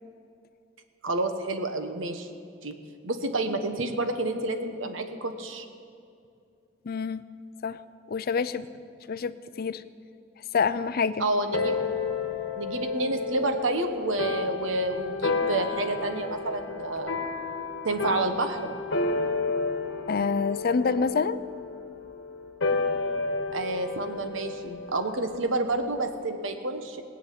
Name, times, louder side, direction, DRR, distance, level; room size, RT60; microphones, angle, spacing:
voice 1, 1.0-2.3 2.6-2.7 3.0-5.6 11.2-11.8 12.6-17.1 17.8-18.7 23.5-27.0, right 2 dB, 85° right, 7 dB, 1.2 m, -29 dB
voice 2, 6.8-7.3 7.6-7.8 8.1-8.7 9.1-9.8 10.5-11.2 20.1-21.4, left 5 dB, 50° left, 14 dB, 0.5 m, -27 dB
sound 1, 11.5-26.3, left 4 dB, 70° left, 1.4 m, -31 dB
18.5 x 6.4 x 9.2 m, 2.5 s
head